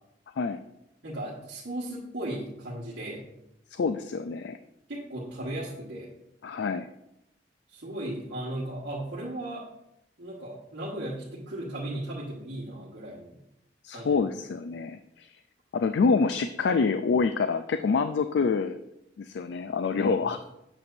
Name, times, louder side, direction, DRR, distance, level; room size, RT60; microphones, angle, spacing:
voice 1, 1.0-3.2 4.9-6.1 7.7-9.7 10.2-13.4 13.9-14.3 20.0-20.3, right 1 dB, 85° right, -7 dB, 1.5 m, -36 dB
voice 2, 3.7-4.6 6.4-6.9 13.8-15.3 15.7-18.8 19.2-20.4, left 4 dB, 75° left, 10 dB, 0.3 m, -26 dB
8.7 x 7.1 x 2.6 m, 0.84 s
head